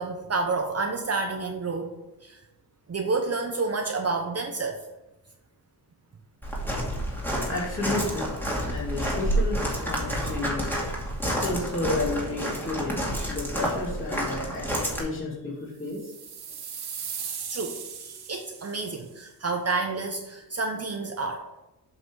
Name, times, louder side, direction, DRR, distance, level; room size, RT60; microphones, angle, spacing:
voice 1, 0.0-1.9 2.2-2.4 2.9-4.8 17.5-21.5, right 3 dB, 35° right, 3 dB, 0.9 m, -29 dB
Walk footsteps, 6.4-15.0, equal, 5° left, 2.3 m, -29 dB
voice 2, 7.2-8.3 8.6-10.8 11.2-16.1 16.6-17.0, left 2 dB, 30° left, -5 dB, 2.7 m, -32 dB
sound 1, 15.8-19.0, right 7 dB, 65° right, 1.4 m, -38 dB
7.8 x 6.0 x 4.8 m, 0.99 s
wide cardioid pair, 125°, 41 cm